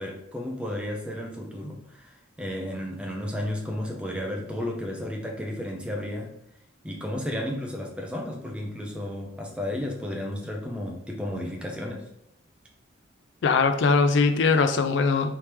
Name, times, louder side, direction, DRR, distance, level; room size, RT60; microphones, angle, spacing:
voice 1, 0.0-6.3 6.8-12.1, left 1 dB, 5° right, 0 dB, 0.6 m, -33 dB
voice 2, 13.4-15.4, left 4 dB, 55° left, 8 dB, 0.3 m, -21 dB
3.5 x 3.1 x 4.4 m, 0.76 s
head